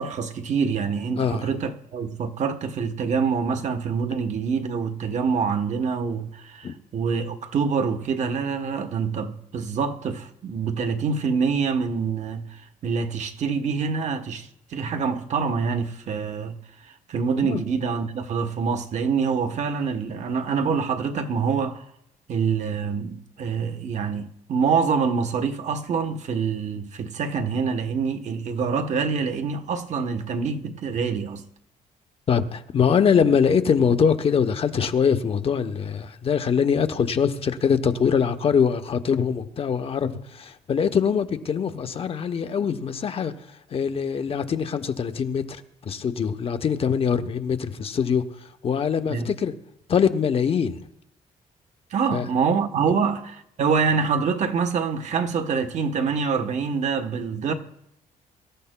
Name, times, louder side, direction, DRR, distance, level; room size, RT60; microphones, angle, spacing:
voice 1, 0.0-16.6 16.8-21.9 22.3-31.4 49.1-49.3 51.9-57.5, right 5 dB, 50° right, 1.0 m, -26 dB
voice 2, 1.2-1.5 6.6-6.7 17.4-17.6 32.3-43.3 43.7-45.4 45.8-48.2 48.6-49.5 49.9-50.8 52.1-52.3 52.9-53.1, left 7 dB, 40° left, 0.8 m, -23 dB
23.5 x 13.5 x 2.2 m
cardioid pair, 130°, 15 cm